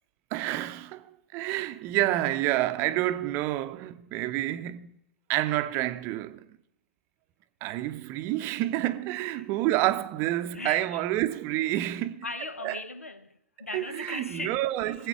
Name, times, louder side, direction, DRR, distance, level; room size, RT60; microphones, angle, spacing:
voice 1, 0.3-5.0 5.3-6.5 7.6-12.2 12.6-12.8 13.7-15.1, right 15 dB, 35° right, 0.6 m, -29 dB
voice 2, 10.5-11.0 12.2-14.9, left 2 dB, 90° left, 0.9 m, -39 dB
20.5 x 8.3 x 4.7 m
figure-of-eight pair, 115°, 7 cm